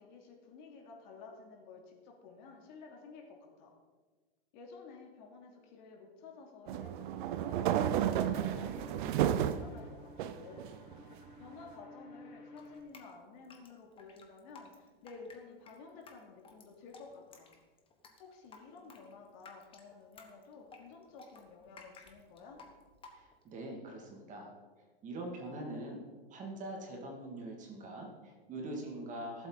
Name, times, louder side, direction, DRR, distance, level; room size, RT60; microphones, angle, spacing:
voice 1, 0.0-3.7 4.5-10.7 11.4-17.5 18.2-22.6, left 4 dB, 50° left, 0 dB, 2.9 m, -53 dB
sound 1, 6.7-9.7 10.2-11.1, right 10 dB, 55° right, 0.8 m, -32 dB
sound 2, 7.2-12.8, left 1 dB, 85° left, 4.5 m, -54 dB
Drip, 12.6-23.5, left 4 dB, 20° left, 1.5 m, -57 dB
voice 2, 23.1-24.6 25.0-29.5, right 1 dB, 25° right, 1 dB, 2.4 m, -43 dB
17.5 x 7.9 x 4.1 m, 1.4 s
hypercardioid pair, 135°, 29 cm